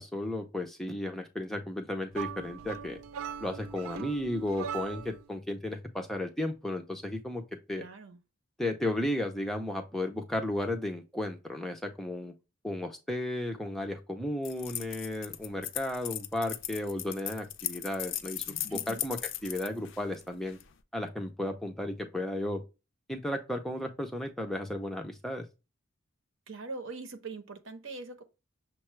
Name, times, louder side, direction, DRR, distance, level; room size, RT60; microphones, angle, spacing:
voice 1, 0.0-3.0 3.4-7.4 7.7-7.8 8.6-12.3 12.6-19.2 19.4-20.6 20.9-22.6 23.1-25.5, left 1 dB, ahead, 0.4 m, -34 dB
sound 1, 2.1-5.3, right 7 dB, 80° right, 0.4 m, -40 dB
voice 2, 7.7-8.2 18.7-19.0 26.5-28.2, right 3 dB, 65° right, 0.8 m, -42 dB
sound 2, 14.4-20.7, left 13 dB, 60° left, 0.4 m, -38 dB
6.4 x 2.3 x 3.0 m
head